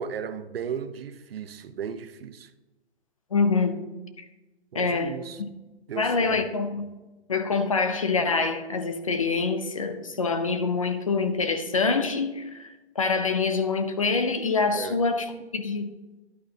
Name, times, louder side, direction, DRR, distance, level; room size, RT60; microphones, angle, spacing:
voice 1, 0.0-2.5 4.7-5.4 5.9-6.4 14.7-15.0, right 7 dB, 60° right, 0.7 m, -35 dB
voice 2, 3.3-3.7 4.7-5.5 6.0-6.9 7.3-15.9, left 4 dB, 30° left, 0.5 m, -25 dB
11.0 x 9.0 x 2.7 m
hypercardioid pair, 175°, 33 cm